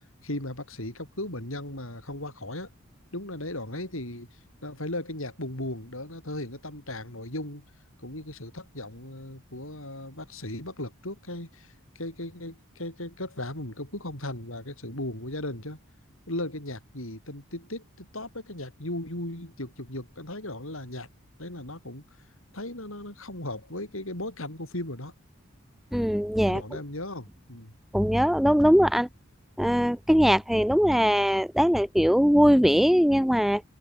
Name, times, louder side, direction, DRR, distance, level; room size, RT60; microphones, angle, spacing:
voice 1, 0.2-2.7 3.1-4.3 4.6-7.6 8.0-15.8 16.3-21.1 21.4-22.0 22.5-25.1 26.5-27.7, left 1 dB, 70° left, 6.6 m, -36 dB
voice 2, 25.9-26.6 27.9-29.1 29.6-33.6, equal, ahead, 0.6 m, -21 dB
open air
head